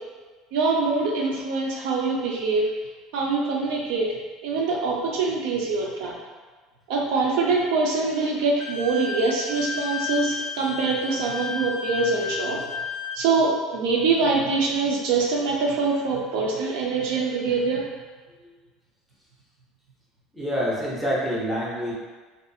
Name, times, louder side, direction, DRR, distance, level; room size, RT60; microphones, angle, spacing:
voice 1, 0.5-2.7 3.1-4.1 4.4-6.1 6.9-12.6 13.1-17.9, right 4 dB, 65° right, -1 dB, 0.5 m, -24 dB
Wind instrument woodwind instrument, 8.6-13.3, left 5 dB, 55° left, 0.4 m, -32 dB
voice 2, 20.3-21.9, equal, 5° right, -7 dB, 0.6 m, -26 dB
2.6 x 2.4 x 2.6 m, 1.4 s
cardioid pair, 175°, 0 cm